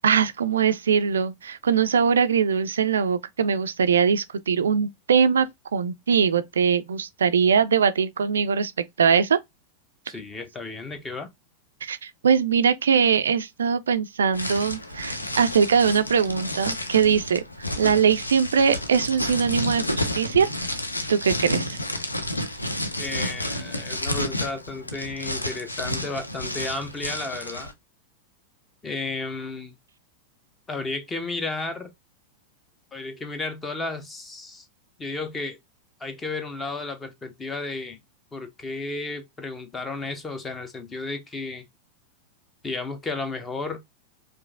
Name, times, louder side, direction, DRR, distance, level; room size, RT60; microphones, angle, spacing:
voice 1, 0.0-9.4 11.8-17.4 17.8-20.5 21.1-21.8, right 6 dB, 70° right, 0.3 m, -22 dB
voice 2, 10.1-11.3 23.0-27.7 28.8-29.7 30.7-31.9 32.9-34.7 35.0-35.6 36.0-38.0 38.3-41.6 42.6-43.8, left 3 dB, 15° left, 0.8 m, -33 dB
sound 1, 14.3-27.7, left 1 dB, 85° left, 0.6 m, -31 dB
4.8 x 2.6 x 2.2 m
figure-of-eight pair, 90°, 0 cm